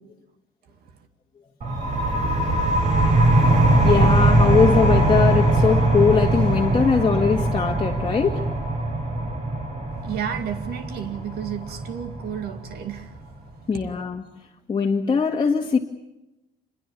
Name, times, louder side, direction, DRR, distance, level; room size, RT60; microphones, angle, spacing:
sound 1, 1.6-13.0, right 2 dB, 45° right, 6.1 m, -21 dB
voice 1, 3.8-8.4 13.7-14.2 14.7-15.8, left 5 dB, 30° left, 1.9 m, -21 dB
voice 2, 10.0-13.2 13.7-13.8, right 9 dB, 70° right, 2.3 m, -32 dB
26.5 x 22.5 x 7.3 m
cardioid pair, 110°, 17 cm